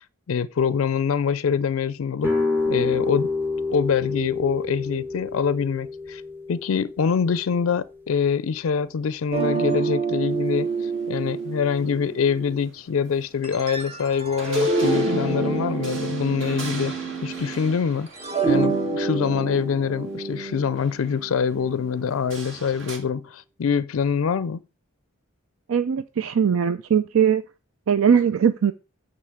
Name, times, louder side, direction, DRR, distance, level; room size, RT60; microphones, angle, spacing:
voice 1, 0.3-2.3 2.7-3.3 3.7-6.2 6.5-16.9 17.2-18.1 18.4-24.6, left 6 dB, 75° left, 0.4 m, -25 dB
sound 1, 2.2-8.0, left 3 dB, 10° right, 3.0 m, -28 dB
sound 2, 9.3-12.5 13.4-17.8 18.1-22.3, right 3 dB, 30° right, 1.2 m, -27 dB
sound 3, 10.3-23.0, right 3 dB, 60° right, 2.1 m, -42 dB
voice 2, 25.7-27.4 27.9-28.7, right 7 dB, 75° right, 0.5 m, -20 dB
9.0 x 4.0 x 6.4 m
head